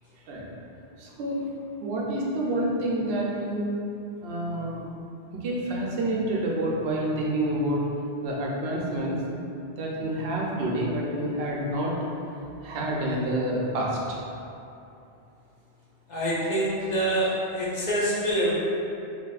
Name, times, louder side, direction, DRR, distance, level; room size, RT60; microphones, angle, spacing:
voice 1, 1.0-1.5 1.8-3.7 4.2-4.9 5.3-7.8 8.2-9.2 9.8-12.0 12.6-14.2, right 1 dB, 75° right, -3 dB, 0.8 m, -28 dB
voice 2, 16.1-18.6, right 1 dB, 50° left, -7 dB, 0.7 m, -26 dB
3.3 x 2.4 x 2.4 m, 2.7 s
omnidirectional pair, 1.1 m